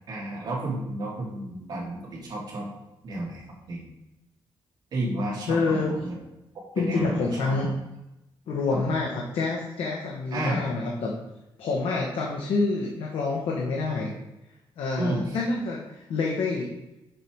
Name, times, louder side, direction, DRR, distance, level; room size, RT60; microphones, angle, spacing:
voice 1, 0.1-2.7 3.0-3.8 4.9-6.1 6.8-7.7 8.7-9.0 10.3-10.6 15.0-15.4, right 1 dB, 45° right, -4 dB, 2.5 m, -31 dB
voice 2, 5.5-5.9 6.8-7.7 8.5-11.1 11.6-14.1 14.8-16.7, left 3 dB, 75° left, -2 dB, 1.3 m, -27 dB
6.9 x 5.7 x 4.6 m, 0.94 s
wide cardioid pair, 175°, 9 cm